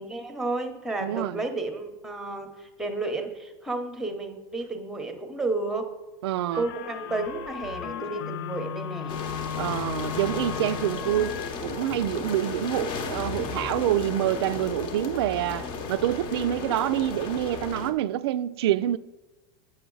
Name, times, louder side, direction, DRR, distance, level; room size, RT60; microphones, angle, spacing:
voice 1, 0.0-5.9 6.6-9.2, right 2 dB, 5° right, 0.8 m, -32 dB
voice 2, 1.0-1.5 6.2-6.7 9.6-19.0, right 13 dB, 80° right, 0.4 m, -27 dB
sound 1, 6.5-11.6, left 8 dB, 85° left, 0.6 m, -35 dB
sound 2, 9.1-17.9, left 5 dB, 40° left, 0.8 m, -34 dB
9.2 x 5.4 x 3.9 m
supercardioid pair, 145°, 13 cm